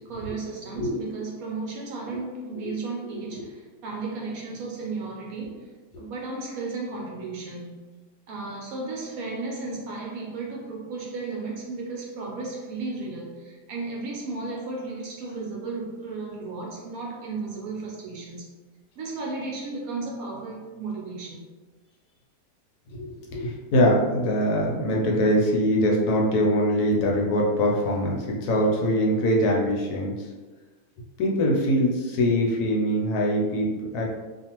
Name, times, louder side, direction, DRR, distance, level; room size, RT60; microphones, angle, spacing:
voice 1, 0.0-5.7 6.0-7.8 8.3-18.5 19.0-21.4, right 3 dB, 70° right, -3 dB, 0.9 m, -34 dB
voice 2, 22.9-30.1 31.2-34.0, equal, 75° left, -2 dB, 1.1 m, -23 dB
2.5 x 2.4 x 2.8 m, 1.2 s
omnidirectional pair, 1.7 m